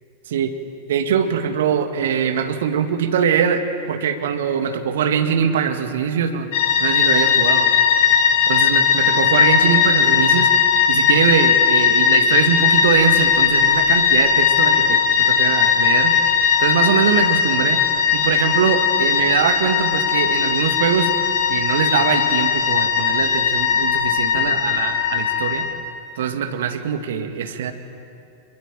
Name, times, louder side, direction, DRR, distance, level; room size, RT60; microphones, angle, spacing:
voice 1, 0.9-6.5 6.8-7.6 8.5-10.5 10.9-16.2 16.6-17.8 18.1-21.1 21.5-25.7 26.2-27.7, right 7 dB, 60° right, 7 dB, 2.0 m, -22 dB
sound 1, 6.5-25.7, left 7 dB, 50° left, 6.0 m, -18 dB
26.0 x 22.5 x 9.0 m, 2.6 s
figure-of-eight pair, 90°, 0 cm